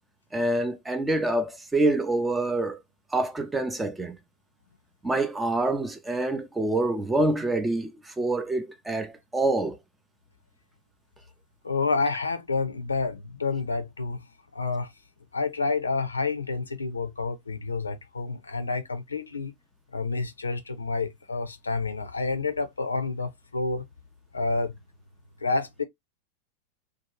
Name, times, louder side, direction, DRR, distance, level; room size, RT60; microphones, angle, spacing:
voice 1, 0.3-2.8 3.1-4.2 5.0-9.8, right 2 dB, 10° right, 0.5 m, -26 dB
voice 2, 11.6-14.2 14.5-14.9 15.3-19.5 19.9-23.8 24.3-24.7 25.4-25.8, left 3 dB, 75° left, 0.5 m, -29 dB
2.8 x 2.3 x 3.0 m
figure-of-eight pair, 90°, 0 cm